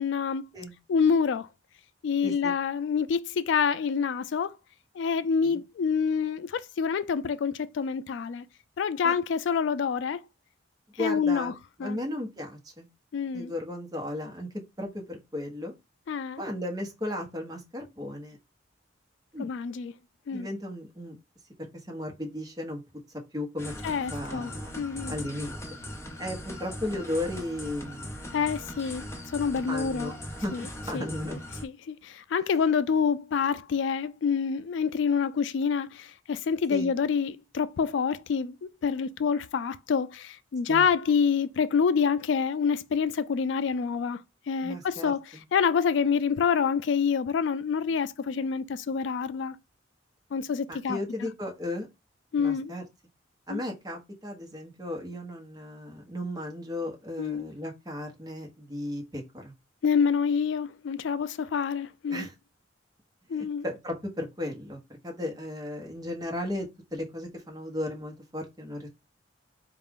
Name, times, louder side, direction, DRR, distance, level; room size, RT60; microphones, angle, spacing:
voice 1, 0.0-0.4 0.9-1.5 2.0-4.5 5.0-8.4 8.8-10.2 11.0-11.5 11.8-12.0 13.1-13.5 16.1-16.4 19.4-19.9 20.3-20.5 23.8-24.5 24.7-25.1 28.3-30.1 30.5-30.7 30.9-31.0 31.6-44.2 44.5-45.2 45.5-49.6 50.3-51.0 52.3-52.7 53.5-53.6 57.2-57.5 59.8-62.3 63.3-63.7, left 6 dB, 70° left, 0.3 m, -27 dB
voice 2, 2.2-2.5 5.4-5.6 9.0-9.1 11.0-11.5 11.8-12.9 13.3-14.5 14.8-15.7 16.4-18.4 19.3-19.5 20.3-21.2 21.6-22.8 23.3-24.7 25.1-25.5 26.2-28.5 29.7-31.4 36.7-36.9 40.7-40.9 44.6-45.4 50.7-51.9 52.4-52.8 53.5-59.5 62.1-62.3 63.3-68.9, left 1 dB, 20° right, 1.1 m, -35 dB
sound 1, 23.6-31.7, left 1 dB, 15° left, 0.7 m, -40 dB
4.2 x 2.4 x 3.6 m
head